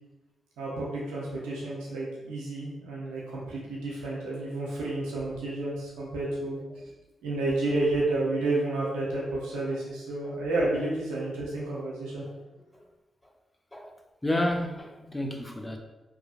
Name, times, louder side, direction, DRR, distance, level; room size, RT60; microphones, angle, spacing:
voice 1, 0.6-6.6 7.2-12.2, right 2 dB, 90° right, -5 dB, 0.7 m, -30 dB
voice 2, 14.2-15.8, left 1 dB, 15° left, 3 dB, 0.5 m, -31 dB
2.8 x 2.5 x 2.4 m, 1.1 s
supercardioid pair, 45°, 0 cm